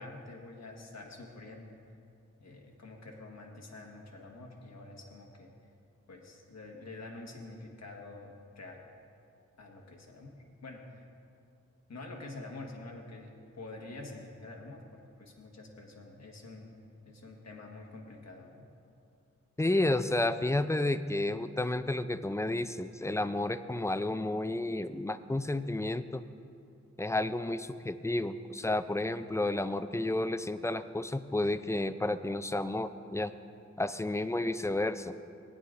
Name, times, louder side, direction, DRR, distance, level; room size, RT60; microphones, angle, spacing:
voice 1, 0.0-1.8 2.4-5.5 6.1-8.8 9.6-11.0 11.9-16.8 17.0-18.7, left 2 dB, 65° left, 1 dB, 1.4 m, -47 dB
voice 2, 19.6-26.2 27.0-33.3 33.8-35.1, left 2 dB, 10° left, 11 dB, 0.4 m, -31 dB
18.0 x 9.4 x 2.5 m, 2.4 s
cardioid pair, 60°, 29 cm